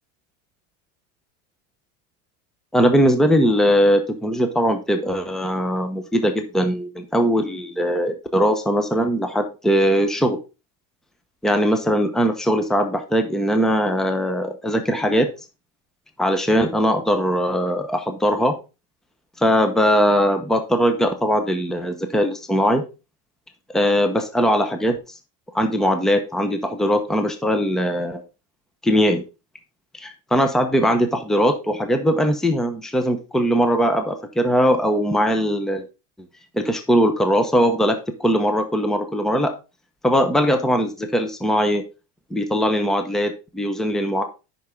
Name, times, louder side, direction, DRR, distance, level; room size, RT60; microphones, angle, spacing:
voice 1, 2.7-10.4 11.4-15.3 16.2-18.5 19.4-22.8 23.7-25.0 25.5-28.2 28.8-29.2 29.9-35.8 36.5-39.5 40.0-41.8 42.3-44.2, equal, ahead, 7 dB, 0.9 m, -20 dB
9.3 x 5.9 x 3.8 m, 0.29 s
cardioid pair, 140°, 38 cm